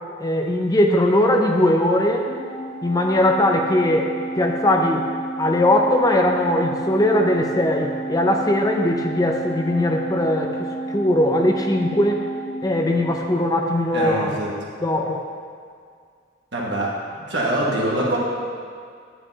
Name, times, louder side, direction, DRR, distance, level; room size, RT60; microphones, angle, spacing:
voice 1, 0.2-2.3 2.8-5.1 5.4-12.2 12.6-14.4 14.8-15.3, left 1 dB, 20° left, 2 dB, 0.5 m, -20 dB
Organ, 2.3-13.5, right 2 dB, 45° left, 1.4 m, -31 dB
voice 2, 13.9-14.5 16.5-16.9 17.2-18.2, right 1 dB, 70° right, -4 dB, 1.7 m, -23 dB
9.9 x 8.4 x 2.8 m, 2.1 s
head